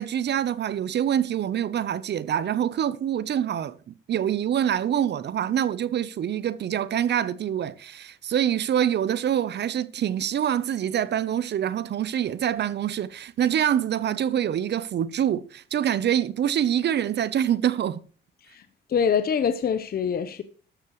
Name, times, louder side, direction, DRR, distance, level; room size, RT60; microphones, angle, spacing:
voice 1, 0.0-18.0, right 10 dB, 60° right, 0.9 m, -25 dB
voice 2, 18.4-20.4, left 7 dB, 50° left, 1.0 m, -25 dB
13.0 x 12.5 x 3.2 m
cardioid pair, 90°, 20 cm